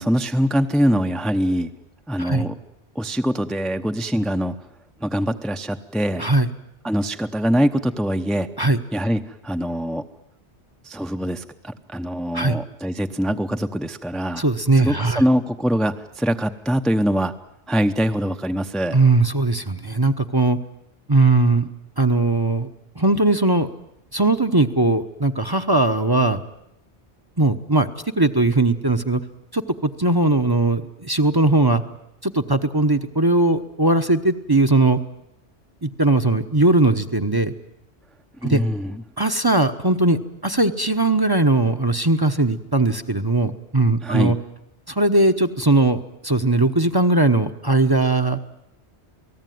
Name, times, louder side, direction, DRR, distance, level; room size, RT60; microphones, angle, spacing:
voice 1, 0.0-1.7 2.1-2.5 2.9-4.6 5.0-6.3 6.8-8.5 8.9-10.0 10.8-14.4 14.8-17.3 17.7-19.0 38.4-39.0 44.0-44.3, equal, ahead, 6 dB, 0.8 m, -23 dB
voice 2, 6.2-6.5 8.6-8.8 12.3-12.6 14.4-15.2 18.9-20.6 21.1-21.7 22.0-22.7 22.9-23.7 24.1-26.4 27.4-27.9 28.2-29.2 29.5-31.8 32.2-35.0 35.8-37.5 38.4-38.6 39.2-44.4 44.9-48.4, right 2 dB, 20° right, 8 dB, 1.0 m, -19 dB
29.0 x 19.0 x 9.4 m, 0.79 s
omnidirectional pair, 1.1 m